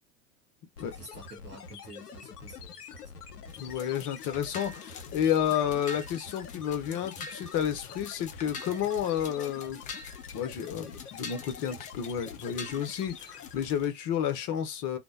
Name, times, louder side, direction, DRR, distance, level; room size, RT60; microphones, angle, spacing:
sound 1, 0.8-13.9, left 6 dB, 80° left, 0.7 m, -46 dB
voice 1, 0.8-3.1, right 2 dB, 25° right, 0.8 m, -50 dB
sound 2, 3.5-13.9, left 4 dB, 20° left, 0.4 m, -46 dB
voice 2, 3.6-9.8 10.3-15.0, left 9 dB, 40° left, 0.8 m, -31 dB
2.6 x 2.1 x 2.4 m
figure-of-eight pair, 85°, 46 cm